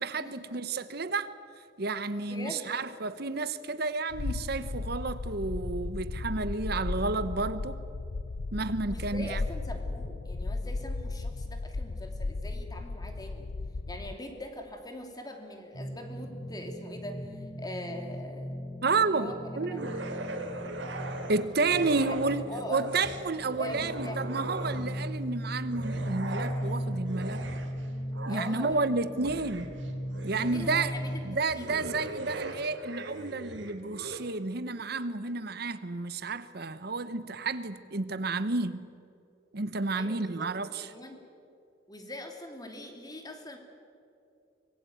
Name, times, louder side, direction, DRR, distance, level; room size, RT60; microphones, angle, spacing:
voice 1, 0.0-1.3 1.8-7.8 8.5-9.4 18.8-19.9 21.3-27.4 28.3-29.7 30.2-30.9 31.2-38.9 39.5-40.9, right 3 dB, 55° right, 0.9 m, -31 dB
voice 2, 2.2-2.7 8.9-13.5 13.9-18.6 19.0-19.9 21.8-21.9 22.5-22.9 23.6-24.2 28.3-28.8 30.3-31.8 39.9-40.5 40.8-41.2 41.9-43.6, left 1 dB, 20° left, 3.0 m, -42 dB
sound 1, 4.1-14.2, left 3 dB, 65° left, 0.6 m, -35 dB
sound 2, 15.7-31.2, equal, 45° left, 3.8 m, -37 dB
sound 3, 19.8-22.4 22.7-25.1 25.6-34.2, right 2 dB, 85° right, 3.2 m, -40 dB
24.5 x 20.0 x 9.3 m
head